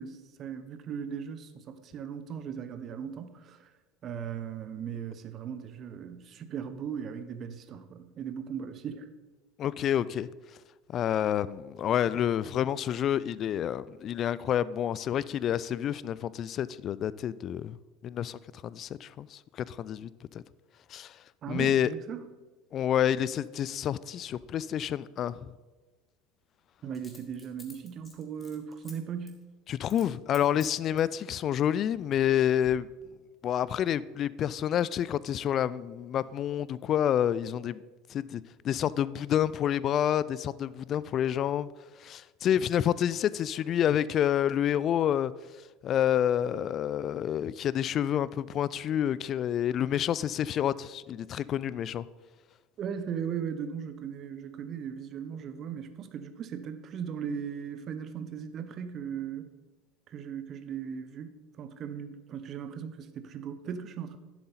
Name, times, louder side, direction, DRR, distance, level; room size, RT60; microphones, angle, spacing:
voice 1, 0.0-3.7 4.0-9.1 21.4-22.2 26.8-29.4 52.8-59.5 60.1-64.2, right 7 dB, 40° right, 0.8 m, -38 dB
voice 2, 9.6-10.3 10.9-17.8 18.0-20.4 20.9-21.2 21.5-21.9 22.7-25.5 29.7-32.9 33.4-37.8 38.1-41.7 42.0-45.3 45.8-52.0, left 10 dB, 40° left, 0.3 m, -28 dB
Coin (dropping), 24.3-24.4 26.9-28.9 29.3-29.4 29.9-30.1 30.3-31.1 31.8-32.3 32.6-32.7, left 4 dB, 25° left, 1.9 m, -52 dB
11.0 x 7.5 x 4.0 m
figure-of-eight pair, 75°, 0 cm